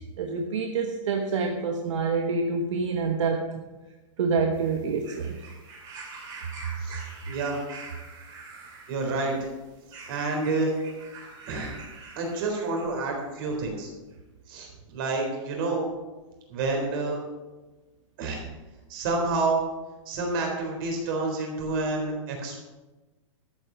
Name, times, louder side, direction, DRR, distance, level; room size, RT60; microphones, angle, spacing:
voice 1, 0.0-3.5 4.2-5.4, right 4 dB, 65° right, 3 dB, 1.3 m, -27 dB
sound 1, 4.5-13.2 14.1-14.2, right 4 dB, 25° right, 2.8 m, -45 dB
voice 2, 6.8-7.6 8.9-9.4 10.1-10.7 11.5-11.8 12.2-13.9 14.5-15.9 16.5-17.2 18.2-18.4 18.9-19.6 20.1-22.6, right 3 dB, 40° right, 1 dB, 4.0 m, -28 dB
13.0 x 8.0 x 6.2 m, 1.2 s
supercardioid pair, 170°, 17 cm